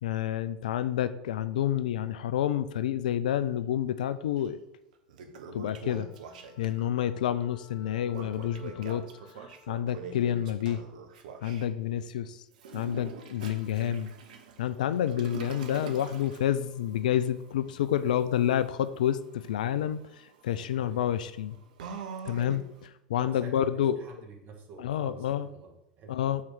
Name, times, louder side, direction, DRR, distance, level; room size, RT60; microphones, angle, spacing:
voice 1, 0.0-4.6 5.5-6.1 6.6-9.0 9.7-10.8 11.4-12.4 12.7-14.1 14.6-21.6 22.2-24.0 24.8-25.5 26.1-26.4, left 10 dB, 75° left, 14 dB, 0.4 m, -29 dB
Toilet flush, 4.4-4.5 4.9-6.8 8.1-11.7 12.5-22.9, right 6 dB, 70° right, 0.8 m, -45 dB
Wind instrument woodwind instrument, 5.8-10.2, left 5 dB, 50° left, 1.4 m, -56 dB
voice 2, 23.2-23.7 24.0-26.3, right 4 dB, 45° right, 2 dB, 1.8 m, -47 dB
5.6 x 4.4 x 6.3 m, 0.84 s
hypercardioid pair, 85°, 4 cm